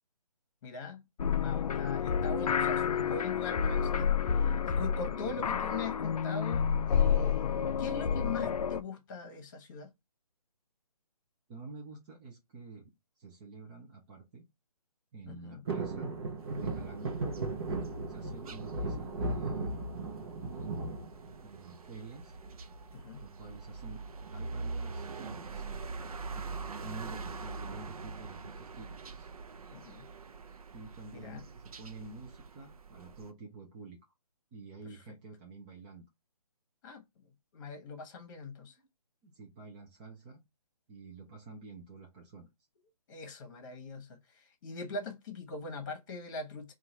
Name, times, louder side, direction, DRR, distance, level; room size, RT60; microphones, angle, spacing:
voice 1, 0.6-1.0 1.4-7.5 7.8-9.9 15.3-15.6 17.0-17.1 22.9-23.2 29.7-30.0 31.1-31.4 36.8-37.0 37.5-38.7 43.1-44.1 44.6-46.7, left 4 dB, 30° left, 1.1 m, -41 dB
sound 1, 1.2-8.8, left 7 dB, 75° left, 0.5 m, -29 dB
voice 2, 11.5-12.9 13.2-14.4 15.1-16.1 16.5-17.2 18.1-19.8 21.4-22.4 23.2-24.0 24.3-25.7 26.3-29.3 30.7-34.0 34.5-36.1 39.2-40.4 40.9-42.5, right 3 dB, 15° right, 0.5 m, -49 dB
sound 2, 15.7-21.8 22.3-22.9 24.2-24.6 24.8-24.9 25.2-25.5 26.3-27.3 27.7-27.8, right 3 dB, 40° right, 0.9 m, -37 dB
sound 3, 16.4-33.3, right 4 dB, 65° right, 0.6 m, -44 dB
3.7 x 2.4 x 4.3 m
hypercardioid pair, 150°, 20 cm